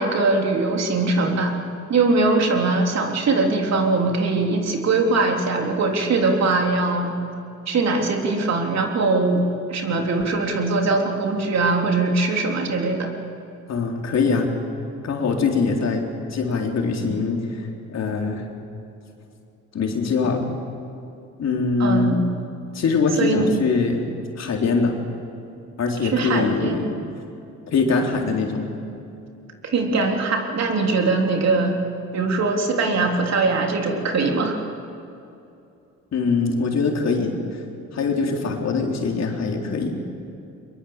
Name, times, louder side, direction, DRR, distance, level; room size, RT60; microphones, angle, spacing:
voice 1, 0.0-1.5 1.9-7.1 7.7-9.4 9.7-13.1 21.8-22.2 23.2-23.6 26.1-26.8 29.6-31.8 32.1-34.6, right 3 dB, 60° right, 2 dB, 3.5 m, -21 dB
voice 2, 13.7-14.5 15.0-18.5 19.7-20.5 21.4-22.2 22.7-24.0 24.4-25.0 25.8-27.0 27.7-28.7 36.1-37.4 37.9-40.0, left 4 dB, 60° left, 1 dB, 3.8 m, -23 dB
23.0 x 22.0 x 7.4 m, 2.7 s
cardioid pair, 90°, 30 cm